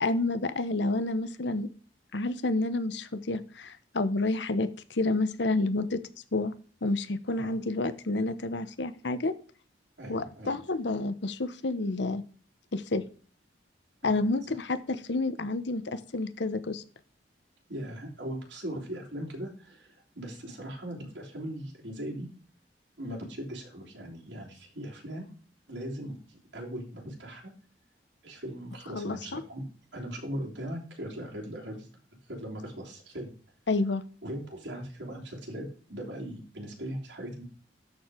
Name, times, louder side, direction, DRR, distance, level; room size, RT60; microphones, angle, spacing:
voice 1, 0.0-1.7 2.1-6.0 6.3-6.5 6.8-9.3 10.1-12.2 12.7-13.0 14.0-16.8 28.9-29.4 33.7-34.0, left 2 dB, 75° left, 13 dB, 0.9 m, -29 dB
voice 2, 7.3-7.6 10.0-10.6 14.0-14.2 17.7-22.3 23.0-25.3 25.7-27.5 28.2-29.7 29.9-31.9 32.3-33.3 34.2-37.4, equal, 85° right, -3 dB, 3.4 m, -39 dB
12.5 x 4.6 x 5.0 m, 0.40 s
head